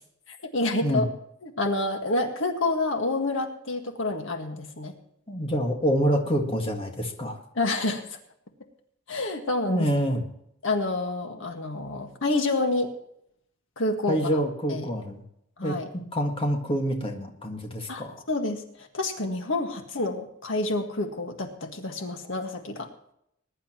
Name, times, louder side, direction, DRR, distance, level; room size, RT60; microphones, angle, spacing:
voice 1, 0.3-1.1 1.4-4.9 7.6-8.2 9.1-9.9 10.6-12.9 13.8-14.4 14.7-14.9 15.6-15.9 17.9-22.9, left 2 dB, 65° left, 4 dB, 1.8 m, -28 dB
voice 2, 5.3-7.4 9.7-10.2 14.1-15.2 15.6-15.8 16.1-18.2, equal, 25° left, 2 dB, 1.9 m, -26 dB
21.0 x 11.0 x 3.0 m, 0.73 s
head